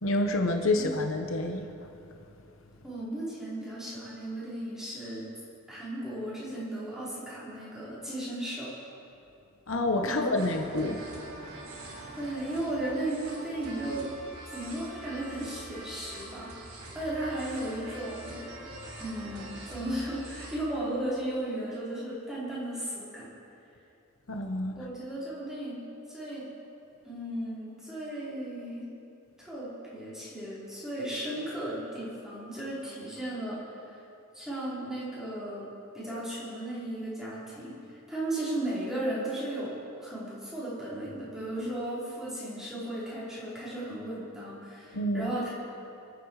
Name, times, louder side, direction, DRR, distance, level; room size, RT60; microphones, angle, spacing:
voice 1, 0.0-1.8 9.7-11.0 24.3-24.7 44.9-45.3, left 2 dB, 65° left, 4 dB, 1.1 m, -28 dB
voice 2, 2.8-5.3 5.7-8.7 10.0-10.4 12.1-14.1 14.5-16.5 16.9-18.7 19.0-23.3 24.8-25.8 26.1-26.5 27.0-28.9 29.4-34.0 34.3-35.7 35.9-37.7 38.1-39.7 40.0-45.5, right 1 dB, 5° right, -9 dB, 4.8 m, -35 dB
sound 1, 10.3-20.6, right 1 dB, 75° right, 4.0 m, -44 dB
28.5 x 9.9 x 4.9 m, 2.7 s
head